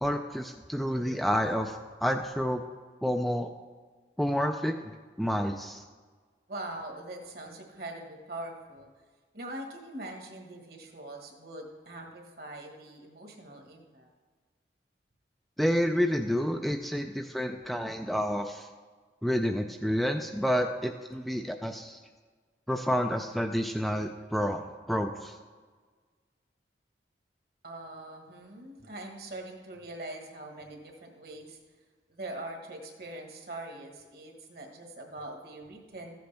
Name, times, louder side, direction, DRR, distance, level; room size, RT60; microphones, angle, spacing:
voice 1, 0.0-2.6 3.0-3.5 4.2-5.8 15.6-18.7 19.2-22.0 22.7-24.6 24.9-25.3, equal, ahead, 4 dB, 0.3 m, -29 dB
voice 2, 6.5-8.9 9.3-14.1 27.6-31.6 32.1-36.2, right 1 dB, 55° right, 2 dB, 1.5 m, -42 dB
14.5 x 7.9 x 3.4 m, 1.5 s
head